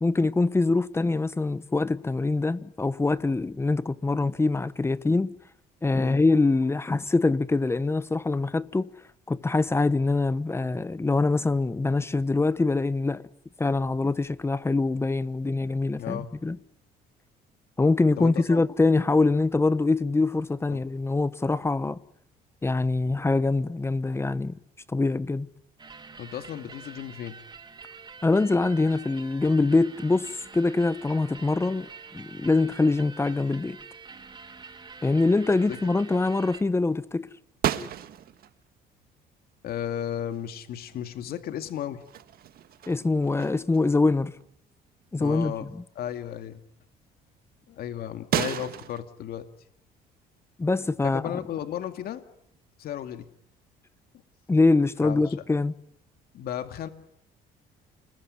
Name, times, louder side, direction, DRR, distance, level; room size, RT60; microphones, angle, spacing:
voice 1, 0.0-5.3 5.8-8.9 9.3-13.2 13.6-16.6 17.8-22.0 22.6-24.6 24.9-25.5 28.2-31.9 32.1-33.8 35.0-37.3 42.9-44.3 45.1-45.7 50.6-51.4 54.5-55.7, left 3 dB, 15° left, 1.2 m, -24 dB
voice 2, 16.0-16.3 18.2-18.6 20.7-20.8 26.2-27.4 35.7-35.8 39.6-42.0 45.2-45.7 46.0-46.6 47.7-49.5 51.0-52.2 52.8-53.3 55.0-55.3 56.3-56.9, left 10 dB, 65° left, 2.3 m, -34 dB
sound 1, 25.8-36.6, right 4 dB, 25° right, 2.7 m, -46 dB
sound 2, 37.6-38.5 40.3-40.5 40.9-41.7 42.0-43.9 44.3-44.5 45.2-45.3 48.3-49.0, right 11 dB, 65° right, 1.7 m, -32 dB
29.5 x 21.0 x 9.7 m
cardioid pair, 110°, 17 cm